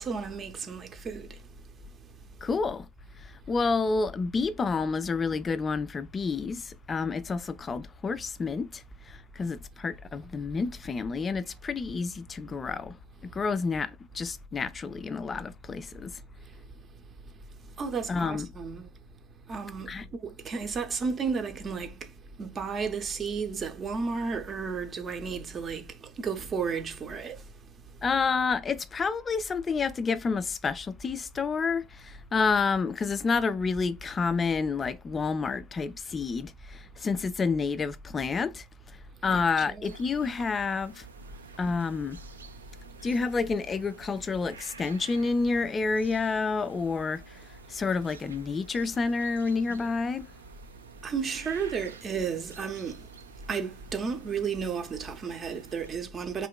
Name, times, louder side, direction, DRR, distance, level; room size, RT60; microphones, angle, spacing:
voice 1, 0.0-1.4 17.8-18.9 19.5-22.1 22.4-27.5 39.3-40.0 51.0-53.1 53.5-56.5, right 5 dB, 25° right, 0.6 m, -33 dB
voice 2, 2.4-2.9 3.2-13.0 13.2-16.2 18.1-18.5 19.9-20.1 28.0-41.1 41.6-42.2 43.0-50.3, left 4 dB, 20° left, 0.3 m, -29 dB
sound 1, 39.8-55.9, right 5 dB, 80° right, 0.4 m, -51 dB
3.6 x 2.8 x 2.2 m
figure-of-eight pair, 85°, 0 cm